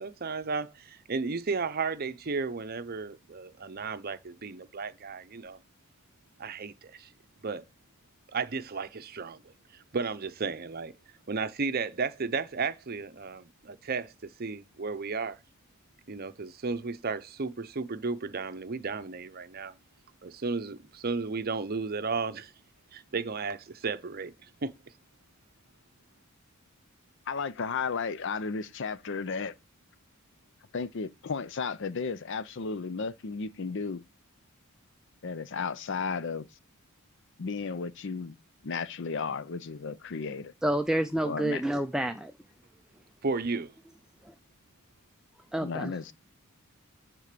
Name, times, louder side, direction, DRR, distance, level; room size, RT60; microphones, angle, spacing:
voice 1, 0.0-5.6 6.4-7.1 7.4-7.6 8.3-10.9 11.3-15.4 16.1-19.7 20.2-22.5 22.9-24.7 43.2-43.7, right 4 dB, 45° right, 0.6 m, -34 dB
voice 2, 27.3-29.5 30.7-34.0 35.2-36.5 37.4-38.4 38.6-40.5 41.2-41.6 45.6-46.1, left 5 dB, 55° left, 0.5 m, -34 dB
voice 3, 40.6-42.3 45.5-45.9, right 1 dB, 5° right, 0.4 m, -28 dB
9.9 x 3.7 x 6.7 m
head